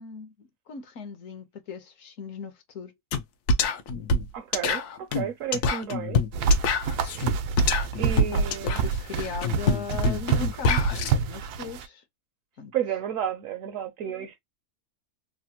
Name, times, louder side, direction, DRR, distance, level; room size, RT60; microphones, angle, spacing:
voice 1, 0.0-2.9 8.3-10.9 11.2-12.0 12.6-12.7, left 6 dB, 65° left, 1.0 m, -38 dB
sound 1, 3.1-3.2 3.5-11.1, left 3 dB, 85° left, 1.2 m, -26 dB
voice 2, 4.3-6.2 8.0-8.8 12.7-14.4, right 9 dB, 70° right, 0.9 m, -32 dB
sound 2, 6.3-11.8, right 5 dB, 90° right, 1.1 m, -27 dB
3.3 x 2.1 x 2.7 m
omnidirectional pair, 1.6 m